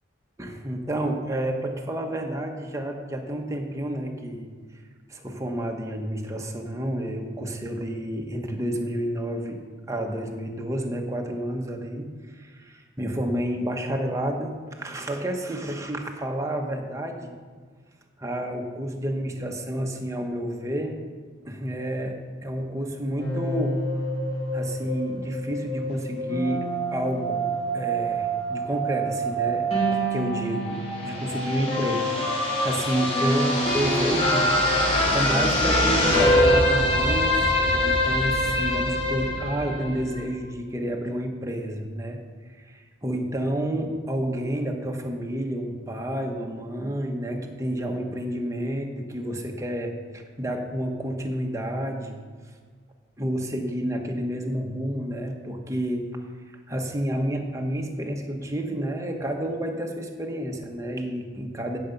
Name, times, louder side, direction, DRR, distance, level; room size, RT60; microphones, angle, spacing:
voice 1, 0.4-4.5 5.1-9.6 9.9-17.4 18.2-21.0 21.4-23.8 24.5-26.6 26.9-34.5 35.0-42.2 42.6-52.2 53.2-56.1 56.7-61.8, right 1 dB, 15° right, 2 dB, 1.2 m, -30 dB
sound 1, 23.2-40.3, equal, 30° left, 2.6 m, -24 dB
16.0 x 6.8 x 5.3 m, 1.5 s
head